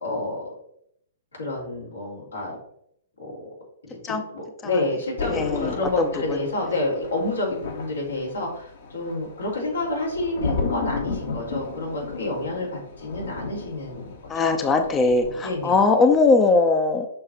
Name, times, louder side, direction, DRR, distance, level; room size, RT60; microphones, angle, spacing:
voice 1, 0.0-0.4 1.4-2.6 3.2-3.3 3.9-14.1 14.4-14.6 15.4-15.8, left 2 dB, 85° left, -3 dB, 3.3 m, -29 dB
Thunder, 5.2-15.8 16.1-16.4, left 4 dB, 65° left, 1.8 m, -34 dB
voice 2, 5.3-6.4 14.3-17.1, left 3 dB, 20° left, 6 dB, 0.7 m, -20 dB
6.6 x 5.4 x 4.4 m, 0.70 s
hypercardioid pair, 115°, 0 cm